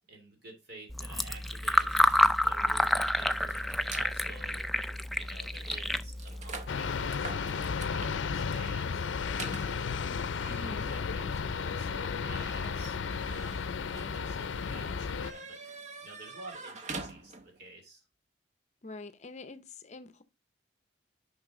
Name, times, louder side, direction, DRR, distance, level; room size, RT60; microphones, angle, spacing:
voice 1, 0.1-2.0 2.4-4.7 5.2-9.8 10.4-13.0 13.3-15.6 16.0-18.0, right 2 dB, 60° right, 2.8 m, -50 dB
Fill (with liquid), 0.9-7.1, left 1 dB, ahead, 0.3 m, -29 dB
sound 1, 1.8-4.1 4.8-4.9 5.2-17.7, right 3 dB, 40° right, 0.8 m, -47 dB
sound 2, 6.7-15.3, left 5 dB, 90° left, 0.5 m, -33 dB
voice 2, 10.5-10.9 18.8-20.2, left 3 dB, 40° left, 0.6 m, -45 dB
6.5 x 5.4 x 3.7 m
head